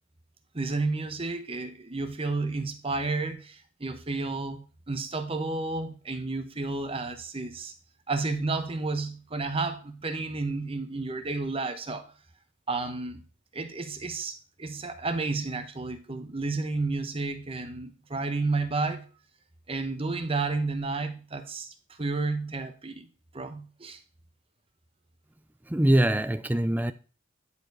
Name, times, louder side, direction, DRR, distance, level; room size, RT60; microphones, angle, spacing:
voice 1, 0.5-7.7 8.1-12.1 12.7-13.2 13.5-19.1 19.7-23.1 23.3-24.0, right 3 dB, 25° right, 1.0 m, -31 dB
voice 2, 25.7-26.9, right 1 dB, 10° right, 0.4 m, -23 dB
9.9 x 4.7 x 4.8 m
head